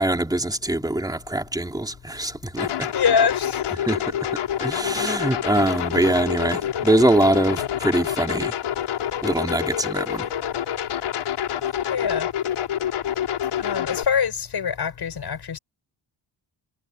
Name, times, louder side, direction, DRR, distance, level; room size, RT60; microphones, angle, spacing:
voice 1, 0.0-2.9 3.8-8.5 9.2-10.3, right 1 dB, 10° right, 3.8 m, -23 dB
sound 1, 2.6-14.0, left 10 dB, 85° left, 4.7 m, -27 dB
voice 2, 2.9-3.7 11.9-12.3 13.6-15.6, left 6 dB, 50° left, 7.2 m, -24 dB
cardioid pair, 125°, 49 cm